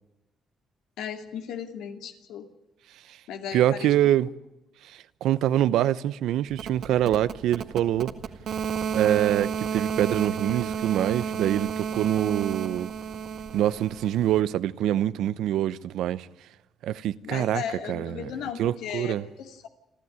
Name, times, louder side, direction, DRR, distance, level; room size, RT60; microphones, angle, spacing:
voice 1, 1.0-2.5 3.3-3.9 17.2-19.7, left 8 dB, 90° left, 2.5 m, -36 dB
voice 2, 3.5-4.3 4.9-8.1 8.9-12.9 13.5-16.3 16.8-17.6 17.9-18.3 18.6-19.3, right 12 dB, 85° right, 0.8 m, -25 dB
sound 1, 6.5-14.4, right 7 dB, 65° right, 1.7 m, -32 dB
29.0 x 12.5 x 9.8 m
cardioid pair, 90°, 0 cm